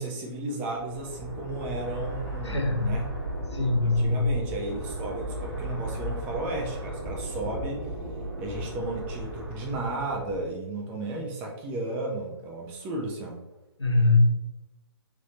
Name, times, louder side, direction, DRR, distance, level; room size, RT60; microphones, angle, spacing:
voice 1, 0.0-3.1 3.8-7.9 8.4-13.4, right 2 dB, 10° right, -1 dB, 0.3 m, -34 dB
sound 1, 0.7-10.5, right 1 dB, 40° right, 1.1 m, -36 dB
voice 2, 2.4-2.9 3.5-4.2 13.8-14.3, left 2 dB, 85° left, 2 dB, 0.8 m, -22 dB
3.5 x 2.6 x 2.6 m, 0.96 s
figure-of-eight pair, 130°, 14 cm